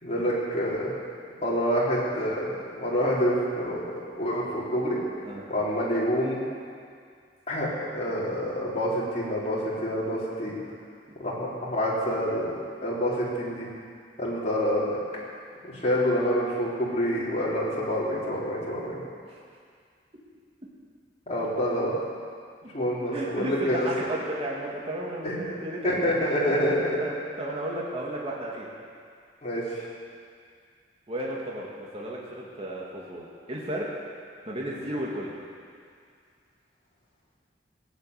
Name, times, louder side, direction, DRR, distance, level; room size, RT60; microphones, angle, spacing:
voice 1, 0.0-0.9 1.4-5.0 5.5-6.4 7.5-10.6 11.2-12.5 12.8-13.7 14.2-15.0 15.6-19.0 21.3-21.9 22.7-23.9 25.2-25.4 25.8-27.0 29.4-29.9, equal, 40° left, -7 dB, 4.1 m, -27 dB
voice 2, 23.1-26.2 26.5-26.7 27.0-28.7 31.1-33.9 34.5-35.4, right 1 dB, 35° right, -4 dB, 2.0 m, -34 dB
17.5 x 9.6 x 8.2 m, 2.2 s
head